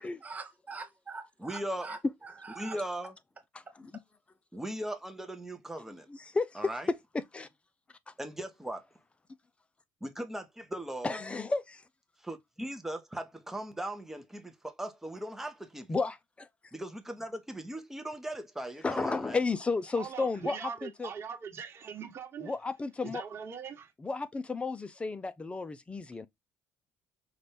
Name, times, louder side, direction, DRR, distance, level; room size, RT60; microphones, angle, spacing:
voice 1, 0.0-2.8 3.7-3.8, right 4 dB, 25° right, 0.9 m, -44 dB
voice 2, 1.4-1.9 2.6-3.1 4.5-6.1 6.6-6.9 8.2-8.8 10.0-11.2 12.2-16.0 16.7-19.4, right 1 dB, 5° right, 1.0 m, -38 dB
voice 3, 6.1-6.6 6.9-7.5 11.0-11.8 15.9-16.5 18.8-21.1 22.4-23.2 24.0-26.3, left 3 dB, 20° left, 0.6 m, -33 dB
voice 4, 19.9-22.5 23.0-23.9, right 7 dB, 45° right, 1.4 m, -41 dB
5.7 x 2.6 x 3.4 m
cardioid pair, 105°, 6 cm